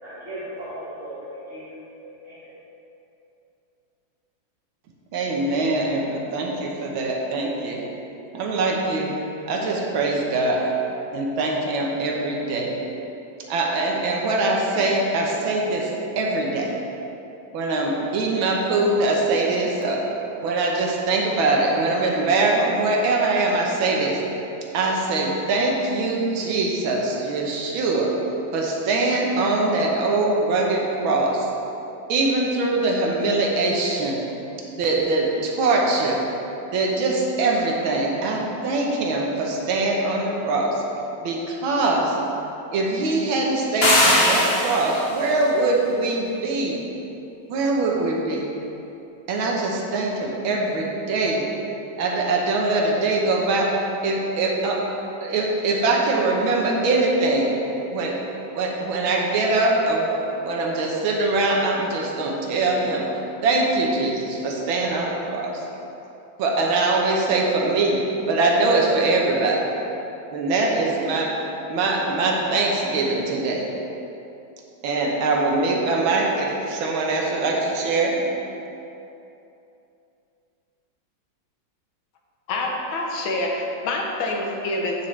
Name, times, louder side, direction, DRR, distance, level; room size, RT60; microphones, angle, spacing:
voice 1, 0.0-1.6 2.0-2.6, right 1 dB, 35° right, -14 dB, 2.1 m, -37 dB
voice 2, 5.1-7.8 8.3-9.1 9.5-10.7 11.1-12.7 13.5-15.9 16.2-16.7 17.5-20.0 20.4-24.2 24.7-28.1 28.5-31.5 32.1-34.2 34.7-36.2 36.7-40.8 41.2-42.2 42.7-46.8 47.5-48.4 49.3-51.4 52.0-54.8 55.2-57.6 57.9-58.1 58.4-63.1 63.4-65.6 66.4-68.0 68.3-69.7 70.3-71.3 71.7-73.7 74.8-78.2, right 2 dB, 90° right, -1 dB, 1.7 m, -22 dB
sound 1, 43.8-45.1, left 1 dB, 35° left, 1.2 m, -19 dB
voice 3, 82.5-85.1, left 2 dB, 90° left, 0 dB, 1.8 m, -26 dB
8.7 x 6.8 x 3.2 m, 2.9 s
omnidirectional pair, 2.1 m